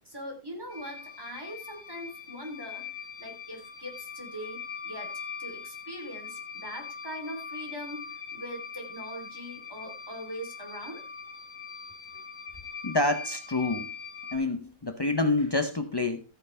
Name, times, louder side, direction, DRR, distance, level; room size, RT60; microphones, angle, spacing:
voice 1, 0.0-2.8 3.2-11.0, equal, 15° right, 2 dB, 3.3 m, -41 dB
sound 1, 0.7-14.4, left 6 dB, 70° left, 2.0 m, -42 dB
voice 2, 12.8-13.9 14.3-16.2, left 2 dB, 40° left, 8 dB, 0.3 m, -27 dB
14.0 x 9.0 x 3.3 m, 0.31 s
omnidirectional pair, 1.8 m